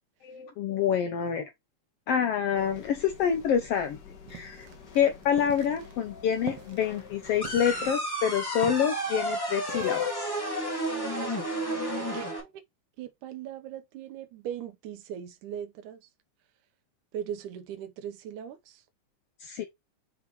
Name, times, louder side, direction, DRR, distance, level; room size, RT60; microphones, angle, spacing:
voice 1, 0.2-1.4 2.1-4.0 4.3-4.7 4.9-10.3 19.4-19.6, left 8 dB, 75° left, 1.4 m, -27 dB
sound 1, 2.5-7.9, left 5 dB, 50° left, 1.3 m, -48 dB
sound 2, 4.2-10.1, right 11 dB, 65° right, 1.7 m, -45 dB
sound 3, 7.4-12.4, equal, 10° left, 2.1 m, -31 dB
voice 2, 12.1-12.5 13.0-16.0 17.1-18.7, right 9 dB, 85° right, 2.4 m, -39 dB
6.6 x 4.8 x 3.0 m
omnidirectional pair, 3.4 m